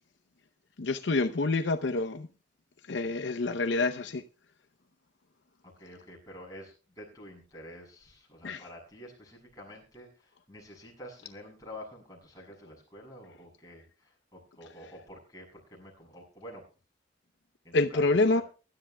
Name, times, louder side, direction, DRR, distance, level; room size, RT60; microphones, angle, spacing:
voice 1, 0.8-2.3 2.9-4.2 8.4-8.6 17.7-18.4, left 3 dB, 70° left, 0.7 m, -27 dB
voice 2, 5.8-16.6 17.6-18.4, left 1 dB, 20° left, 7.1 m, -48 dB
24.0 x 12.5 x 2.3 m
head